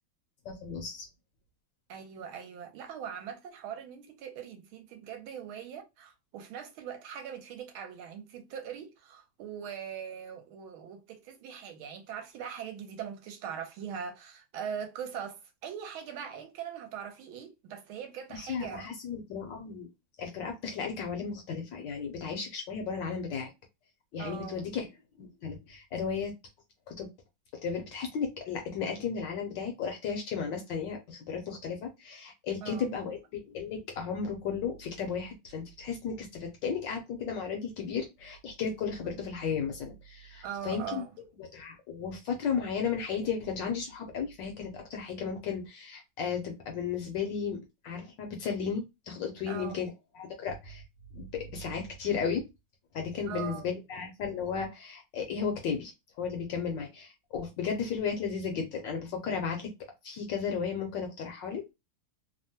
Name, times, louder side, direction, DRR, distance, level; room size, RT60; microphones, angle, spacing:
voice 1, 0.4-1.1 18.3-19.9 20.2-23.5 24.1-24.9 25.2-26.3 26.9-27.1 27.6-41.0 41.4-47.6 47.8-49.9 50.1-50.8 51.2-52.4 52.9-55.9 56.2-59.7 60.0-61.6, left 6 dB, 70° left, 1.2 m, -34 dB
voice 2, 1.9-18.9 24.2-24.7 32.6-32.9 40.4-41.1 49.5-49.8 53.3-53.7, right 8 dB, 75° right, 1.4 m, -41 dB
3.5 x 2.1 x 2.7 m
omnidirectional pair, 2.4 m